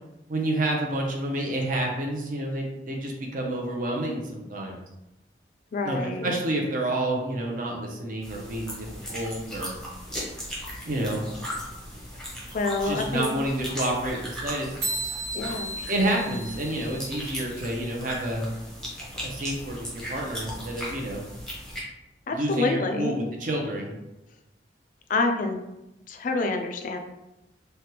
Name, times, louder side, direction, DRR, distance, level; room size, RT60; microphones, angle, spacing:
voice 1, 0.3-4.8 5.8-9.7 10.9-11.3 12.8-14.7 15.9-18.5 19.2-21.2 22.3-23.9, right 1 dB, 50° right, 0 dB, 0.6 m, -29 dB
voice 2, 5.7-6.3 12.5-13.3 15.3-15.7 22.3-23.1 25.1-25.6 26.1-27.0, left 3 dB, 45° left, 5 dB, 0.3 m, -27 dB
sound 1, 8.2-21.8, equal, 5° left, 0.7 m, -38 dB
sound 2, 14.8-17.4, right 2 dB, 75° right, 1.3 m, -34 dB
3.3 x 2.2 x 2.8 m, 0.93 s
head